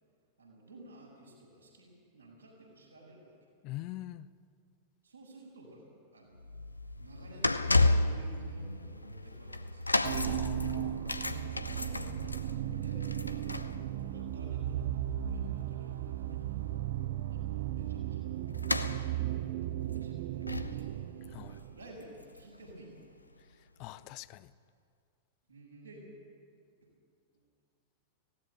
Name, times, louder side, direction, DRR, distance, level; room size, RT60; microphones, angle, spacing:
voice 1, 0.4-3.3 5.0-6.5 7.0-9.9 11.6-13.6 13.9-16.4 17.3-18.3 18.7-23.1 25.5-26.1 27.3-27.5, right 2 dB, 80° right, -3 dB, 6.7 m, -54 dB
voice 2, 3.6-4.3 10.2-11.0 21.3-21.6 23.8-24.5, left 16 dB, 40° left, 17 dB, 0.6 m, -42 dB
sound 1, 6.3-22.7 23.0-23.2 24.0-24.1, left 2 dB, 85° left, 0.6 m, -34 dB
sound 2, 10.0-21.9, right 13 dB, 50° right, 0.5 m, -36 dB
17.0 x 16.0 x 10.0 m, 2.3 s
figure-of-eight pair, 90°, 0 cm